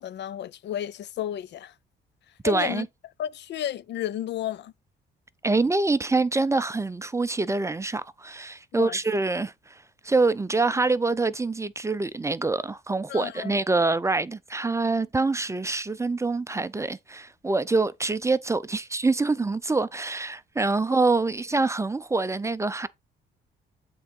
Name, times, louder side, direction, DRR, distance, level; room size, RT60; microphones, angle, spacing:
voice 1, 0.0-1.7 2.4-2.9 3.2-4.7 8.7-9.0 13.1-13.6, left 11 dB, 60° left, 0.4 m, -32 dB
voice 2, 2.4-2.9 5.4-22.9, right 3 dB, 15° right, 0.5 m, -25 dB
7.8 x 3.8 x 5.2 m
cardioid pair, 90°, 20 cm